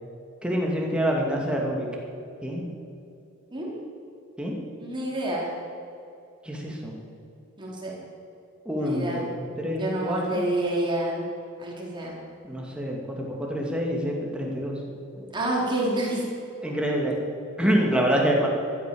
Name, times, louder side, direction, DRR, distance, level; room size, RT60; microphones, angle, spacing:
voice 1, 0.4-1.9 2.4-2.7 4.4-4.5 6.4-6.9 8.7-10.5 12.4-14.8 15.1-15.3 16.6-17.2 17.6-18.5, equal, 5° right, -1 dB, 2.5 m, -26 dB
voice 2, 4.8-5.5 7.6-8.0 8.8-9.2 9.7-11.2 11.6-12.1 15.3-16.2, right 1 dB, 20° right, -4 dB, 3.9 m, -28 dB
14.5 x 12.5 x 7.1 m, 2.6 s
head